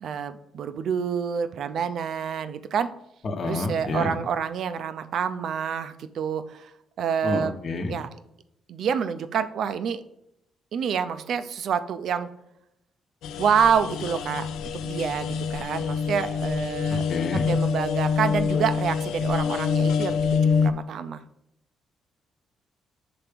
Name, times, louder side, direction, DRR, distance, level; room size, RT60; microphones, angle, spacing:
voice 1, 0.0-2.9 3.4-6.7 7.0-7.5 7.9-8.1 8.7-10.0 10.7-12.3 13.4-17.1 17.5-21.2, right 7 dB, 65° right, 11 dB, 0.5 m, -27 dB
voice 2, 3.2-4.1 7.2-8.0 16.9-17.5, left 3 dB, 50° left, 6 dB, 1.0 m, -29 dB
sound 1, 13.2-20.7, left 5 dB, 85° left, 0.3 m, -26 dB
6.0 x 3.4 x 5.1 m, 0.79 s
cardioid pair, 90°, 0 cm